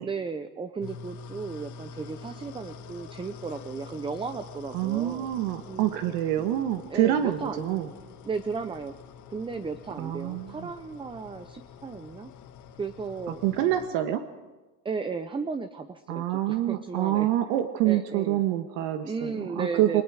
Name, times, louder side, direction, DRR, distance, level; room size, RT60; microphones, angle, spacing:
voice 1, 0.0-5.3 5.7-5.9 6.9-7.9 8.2-8.9 9.3-12.3 12.8-13.4 14.8-17.3 17.8-18.4 19.0-20.0, right 4 dB, 10° right, 9 dB, 0.7 m, -35 dB
Heater Warmup (powerful), 0.8-13.9, left 5 dB, 40° left, 1.5 m, -46 dB
voice 2, 4.7-7.9 10.0-10.7 13.4-14.2 16.1-20.0, right 12 dB, 60° right, 7 dB, 1.4 m, -26 dB
29.5 x 20.0 x 4.9 m, 1.2 s
supercardioid pair, 125°, 46 cm